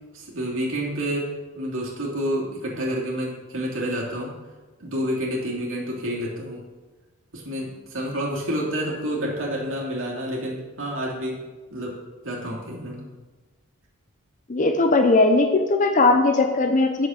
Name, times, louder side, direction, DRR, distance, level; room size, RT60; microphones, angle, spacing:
voice 1, 0.1-4.4 4.8-6.6 7.3-11.4 11.7-13.1, equal, 65° right, -3 dB, 2.8 m, -29 dB
voice 2, 14.5-17.1, left 3 dB, 35° left, 6 dB, 0.8 m, -19 dB
8.5 x 7.1 x 6.5 m, 1.3 s
head